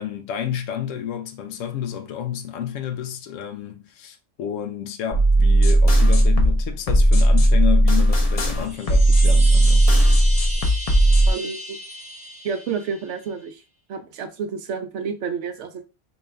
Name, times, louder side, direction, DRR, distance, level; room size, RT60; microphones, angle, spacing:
voice 1, 0.0-9.9, left 9 dB, 85° left, 0.9 m, -30 dB
sound 1, 5.1-11.3, right 1 dB, 40° left, 0.6 m, -16 dB
Chime, 8.6-13.2, equal, 10° right, 0.4 m, -34 dB
voice 2, 11.2-11.8 12.4-13.6 13.9-15.8, right 6 dB, 70° right, 0.9 m, -30 dB
4.4 x 2.3 x 3.2 m
omnidirectional pair, 1.3 m